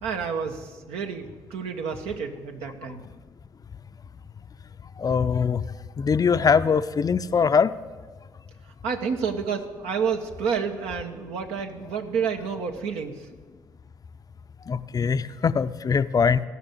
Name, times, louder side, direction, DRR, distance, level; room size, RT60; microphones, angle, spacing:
voice 1, 0.0-3.0 8.8-13.3, right 6 dB, 75° right, 5 dB, 1.1 m, -29 dB
voice 2, 5.0-5.6 6.0-7.7 14.7-16.4, left 6 dB, 35° left, 13 dB, 0.5 m, -22 dB
15.5 x 5.9 x 9.1 m, 1.5 s
hypercardioid pair, 45°, 11 cm